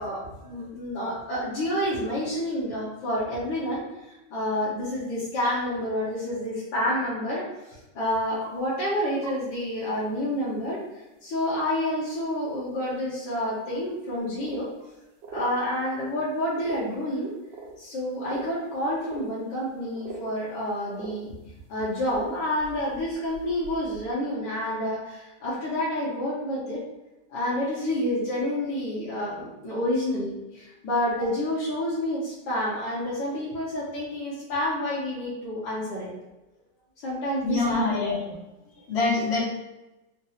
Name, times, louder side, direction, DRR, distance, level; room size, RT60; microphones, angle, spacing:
voice 1, 0.0-7.4 7.7-10.8 11.2-14.7 15.3-17.3 17.8-21.3 21.7-26.8 27.3-36.1 37.0-38.0, left 1 dB, 80° left, -8 dB, 1.5 m, -29 dB
sound 1, 8.4-8.5 9.2-9.4 9.8-9.9 10.2-10.3 12.4-12.5 13.5-13.6 14.1-14.2 14.4-14.9 15.2-15.5 16.5-17.0 17.5-17.8 18.2-19.3 19.6-19.7 19.9-20.3 20.6-20.7 20.9-21.2 22.0-24.0, right 3 dB, 80° right, 1.2 m, -41 dB
voice 2, 37.4-38.2 38.9-39.4, left 3 dB, 55° left, -4 dB, 0.7 m, -24 dB
3.7 x 2.1 x 2.7 m, 1.0 s
omnidirectional pair, 2.0 m